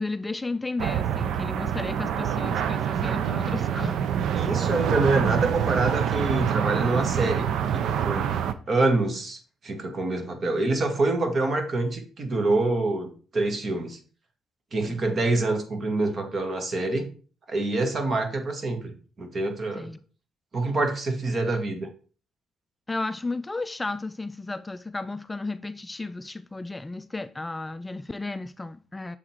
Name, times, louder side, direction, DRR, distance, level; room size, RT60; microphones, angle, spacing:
voice 1, 0.0-4.3 14.8-15.0 19.7-20.0 22.9-29.2, left 3 dB, 15° left, 0.3 m, -33 dB
sound 1, 0.8-8.5, right 8 dB, 75° right, 0.5 m, -26 dB
voice 2, 4.3-8.3 8.7-14.0 14.7-17.1 17.5-19.9 20.5-21.9, right 2 dB, 45° right, 1.6 m, -26 dB
7.1 x 3.8 x 4.5 m
cardioid pair, 90°, 0 cm